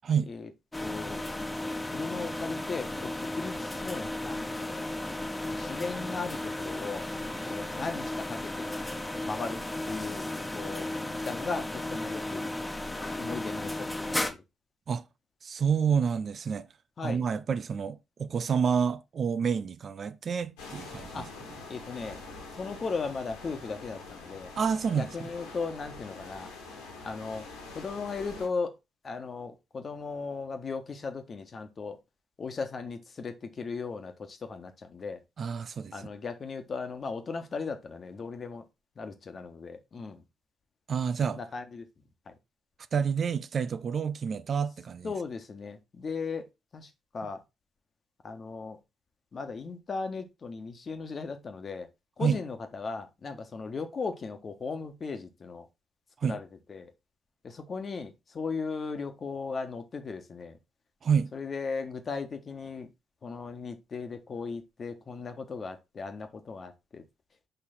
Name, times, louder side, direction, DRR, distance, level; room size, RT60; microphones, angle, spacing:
sound 1, 0.7-14.3, left 1 dB, 15° left, 1.3 m, -34 dB
voice 1, 0.8-1.2 1.9-4.9 5.5-7.0 7.4-8.7 9.2-10.9 11.2-12.5 13.2-14.4 17.0-17.2 21.1-21.3 21.7-22.2 22.6-24.5 25.0-26.5 27.0-27.5 27.7-28.7 29.0-32.0 32.4-35.2 35.9-38.6 39.0-40.2 41.3-41.9 42.3-42.4 45.0-46.4 46.7-47.4 48.2-48.8 49.3-51.9 52.2-55.7 56.2-56.9 57.4-60.6 61.3-62.9 63.2-67.0, left 4 dB, 40° left, 1.5 m, -37 dB
voice 2, 15.4-16.7 17.0-21.2 24.6-25.3 35.4-35.9 40.9-41.4 42.9-45.1 52.2-52.4 56.2-56.4 61.0-61.3, right 6 dB, 45° right, 0.6 m, -28 dB
sound 2, 20.6-28.5, left 3 dB, 70° left, 2.1 m, -45 dB
6.9 x 5.5 x 4.2 m
figure-of-eight pair, 40°, 0 cm